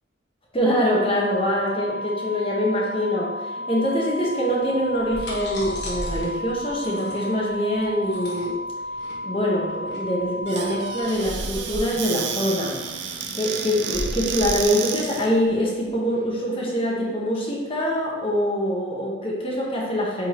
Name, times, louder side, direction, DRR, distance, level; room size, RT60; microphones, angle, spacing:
voice 1, 0.5-8.6 9.2-12.8 13.3-20.3, equal, 25° left, -3 dB, 1.2 m, -24 dB
sound 1, 0.6-11.0, left 1 dB, 25° right, 1.6 m, -33 dB
sound 2, 4.8-16.2, equal, 55° left, 1.4 m, -36 dB
Squeak / Cupboard open or close, 10.5-15.3, right 7 dB, 60° right, 0.5 m, -31 dB
8.6 x 3.8 x 3.0 m, 1.3 s
head